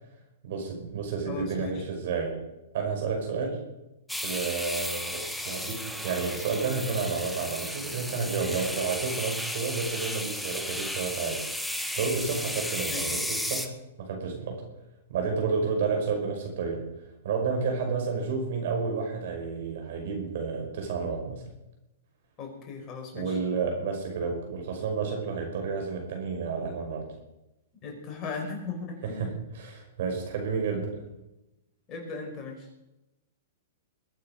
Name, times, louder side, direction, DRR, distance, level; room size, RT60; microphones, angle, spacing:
voice 1, 0.4-2.4 2.7-3.6 4.2-11.4 12.0-14.6 15.1-16.9 17.2-21.4 23.1-27.1 29.0-31.0, right 5 dB, 65° right, 2 dB, 5.6 m, -31 dB
voice 2, 1.3-1.8 12.9-13.1 22.4-23.4 27.8-29.3 31.9-32.7, left 4 dB, 30° left, 1 dB, 5.1 m, -37 dB
sound 1, 4.1-13.7, left 1 dB, ahead, 1.2 m, -34 dB
22.0 x 9.0 x 5.2 m, 0.93 s
hypercardioid pair, 135°, 0 cm